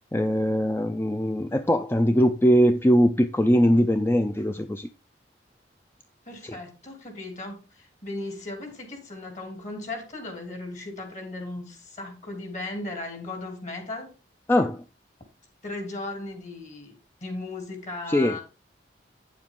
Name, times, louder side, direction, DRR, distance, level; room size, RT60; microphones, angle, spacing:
voice 1, 0.1-4.9 6.5-6.6 14.5-14.8 18.1-18.4, equal, 15° left, 0.4 m, -21 dB
voice 2, 6.2-14.1 15.6-18.4, left 2 dB, 45° left, 3.0 m, -37 dB
9.2 x 7.3 x 3.7 m
head